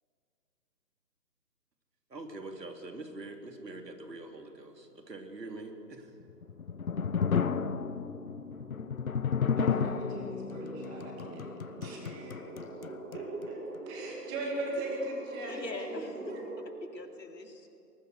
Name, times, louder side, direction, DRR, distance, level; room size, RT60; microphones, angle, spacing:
voice 1, 2.1-6.1, right 2 dB, 80° right, 4 dB, 3.6 m, -44 dB
sound 1, 5.8-16.6, right 3 dB, 50° right, 4.9 m, -48 dB
sound 2, 6.3-13.5, left 6 dB, 55° left, 1.0 m, -33 dB
voice 2, 9.6-11.5 11.8-12.4 13.1-15.9 16.3-16.4, right 2 dB, 10° right, -1 dB, 2.1 m, -39 dB
voice 3, 15.5-17.7, left 3 dB, 85° left, 3 dB, 3.8 m, -43 dB
24.5 x 21.5 x 6.6 m, 2.5 s
hypercardioid pair, 165°, 49 cm